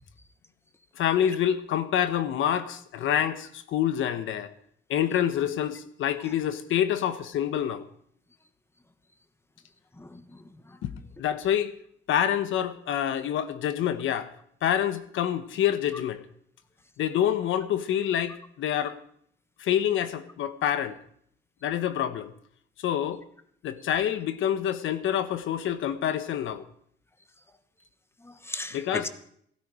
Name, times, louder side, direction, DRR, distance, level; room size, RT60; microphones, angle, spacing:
voice 1, 1.0-4.5 4.9-7.8 10.8-10.9 11.2-11.7 12.1-14.3 14.6-16.2 17.0-19.0 19.6-20.9 21.6-22.3 22.8-23.2 23.6-26.6 28.7-29.1, left 10 dB, 80° left, 12 dB, 1.1 m, -27 dB
voice 2, 10.0-10.8 28.2-29.1, left 2 dB, 10° left, 11 dB, 1.3 m, -38 dB
16.0 x 13.0 x 4.9 m, 0.66 s
cardioid pair, 90°, 20 cm